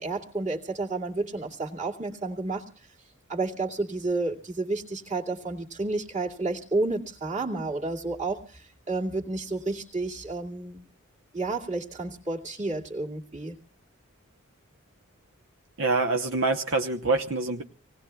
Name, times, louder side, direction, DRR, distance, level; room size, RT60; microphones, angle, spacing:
voice 1, 0.0-2.6 3.3-10.8 11.3-13.6, right 3 dB, 35° right, -2 dB, 2.6 m, -31 dB
voice 2, 15.8-17.6, right 3 dB, 65° right, 5 dB, 1.0 m, -25 dB
26.5 x 19.5 x 2.3 m, 0.43 s
head